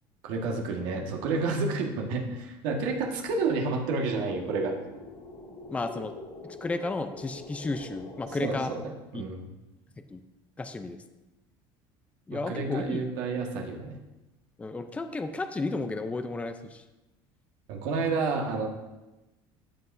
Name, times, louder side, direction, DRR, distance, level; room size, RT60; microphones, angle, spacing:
voice 1, 0.2-4.8 8.4-9.4 12.3-13.9 17.7-18.7, right 4 dB, 75° right, 0 dB, 1.7 m, -30 dB
sound 1, 2.8-8.8, left 3 dB, 50° left, 2.7 m, -45 dB
voice 2, 5.7-6.1 6.4-8.7 9.1-9.2 10.1-10.2 10.6-11.0 12.3-13.0 14.6-16.8, left 3 dB, 10° left, 8 dB, 0.6 m, -33 dB
13.0 x 7.9 x 2.7 m, 1.0 s
cardioid pair, 130°, 12 cm